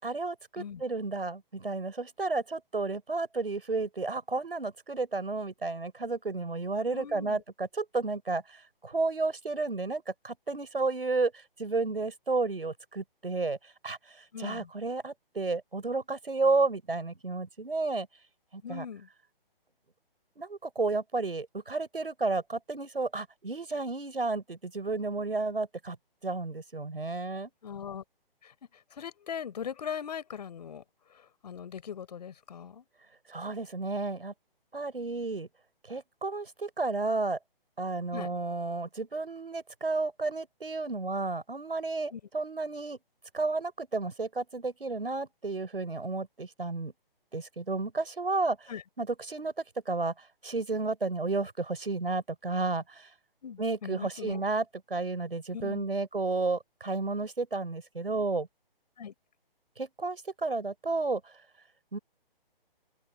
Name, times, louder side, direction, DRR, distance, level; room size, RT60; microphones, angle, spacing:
voice 1, 0.0-18.1 18.5-18.9 20.4-26.0 26.2-27.5 33.3-34.3 34.7-35.5 35.9-37.4 37.8-43.0 43.3-46.9 47.3-53.1 53.6-58.5 59.8-61.4 61.9-62.0, right 3 dB, 70° right, 7.0 m, -32 dB
voice 2, 6.9-7.4 14.3-14.7 18.6-19.1 27.6-28.0 28.4-28.5 28.9-30.8 31.1-32.8 38.1-38.3 42.1-42.2 48.7-48.8 53.4-54.4 55.5-55.8 59.0-59.1, left 7 dB, 45° left, 5.4 m, -40 dB
open air
figure-of-eight pair, 135°, 29 cm